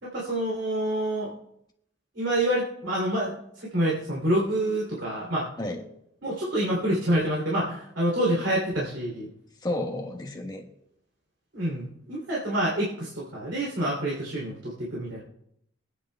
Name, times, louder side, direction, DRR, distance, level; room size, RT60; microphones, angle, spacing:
voice 1, 0.0-1.3 2.1-5.5 6.2-9.3 11.5-15.2, right 1 dB, 75° right, -5 dB, 2.8 m, -27 dB
voice 2, 9.6-10.7, left 1 dB, 20° left, 1 dB, 1.3 m, -31 dB
24.0 x 9.7 x 2.2 m, 0.76 s
head